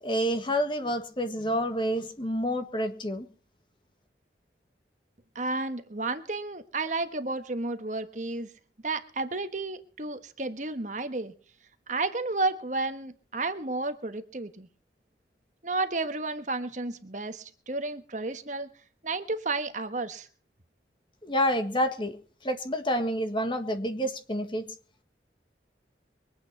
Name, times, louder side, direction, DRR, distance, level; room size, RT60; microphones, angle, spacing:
voice 1, 0.0-3.3 21.2-22.2 22.4-24.7, equal, 25° left, 7 dB, 1.7 m, -28 dB
voice 2, 5.3-8.5 8.8-11.3 11.9-14.7 15.6-18.7 19.0-20.3, right 3 dB, 40° right, 9 dB, 1.3 m, -32 dB
23.0 x 8.7 x 5.8 m, 0.41 s
head